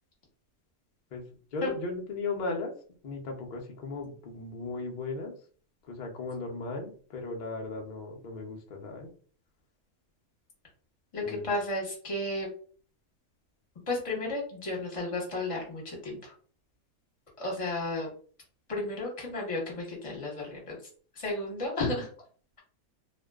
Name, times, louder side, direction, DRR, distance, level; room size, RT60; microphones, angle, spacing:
voice 1, 1.5-2.7 3.0-5.3 5.9-9.1 11.2-11.5, left 3 dB, 85° left, 0 dB, 0.4 m, -36 dB
voice 2, 11.1-12.5 13.9-16.3 17.4-18.1 18.7-20.8 21.2-22.1, left 2 dB, 30° left, -2 dB, 0.8 m, -33 dB
2.5 x 2.2 x 2.3 m, 0.43 s
omnidirectional pair, 1.5 m